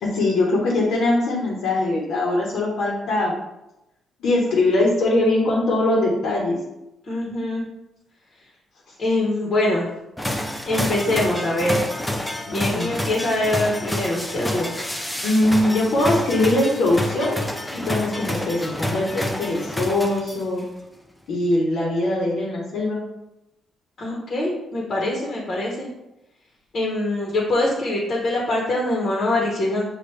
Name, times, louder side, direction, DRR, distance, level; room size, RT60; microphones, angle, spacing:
voice 1, 0.0-3.3 4.2-6.6 12.5-12.9 15.2-17.4 17.7-20.6 21.3-23.0, left 2 dB, 75° left, -4 dB, 1.1 m, -21 dB
voice 2, 7.0-7.7 9.0-9.9 10.7-11.9 12.5-14.7 24.0-25.9 26.7-29.9, left 1 dB, 45° left, -3 dB, 1.2 m, -23 dB
sound 1, 10.2-20.6, left 1 dB, 5° left, 0.5 m, -28 dB
6.0 x 2.5 x 3.3 m, 0.91 s
cardioid pair, 90°, 0 cm